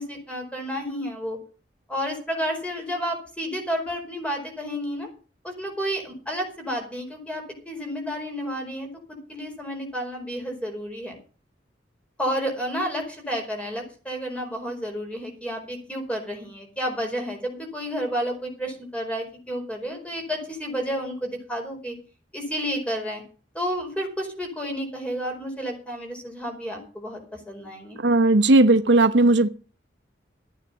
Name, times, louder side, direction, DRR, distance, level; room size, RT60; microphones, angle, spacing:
voice 1, 0.0-1.4 1.9-5.1 5.4-11.2 12.2-21.9 22.3-23.2 23.5-28.0, equal, 5° left, 2 dB, 4.8 m, -31 dB
voice 2, 28.0-29.5, right 2 dB, 80° right, 11 dB, 1.0 m, -17 dB
14.0 x 9.3 x 7.0 m, 0.37 s
head